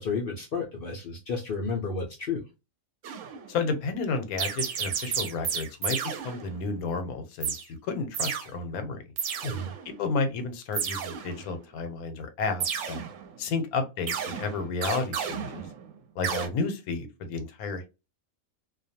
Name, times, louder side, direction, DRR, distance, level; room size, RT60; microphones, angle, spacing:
voice 1, 0.0-2.4 9.4-9.7, left 4 dB, 65° left, 1 dB, 0.5 m, -31 dB
sound 1, 3.0-3.6 4.4-6.7 7.4-7.6 8.1-8.5 9.2-10.0 10.7-11.6 12.6-13.5 14.1-16.0 16.2-16.5, right 7 dB, 70° right, 0.9 m, -32 dB
voice 2, 3.5-6.0 6.2-9.0 10.0-13.0 13.4-15.7 16.2-17.9, left 4 dB, 85° left, 8 dB, 1.1 m, -31 dB
2.4 x 2.2 x 2.7 m, 0.27 s
omnidirectional pair, 1.5 m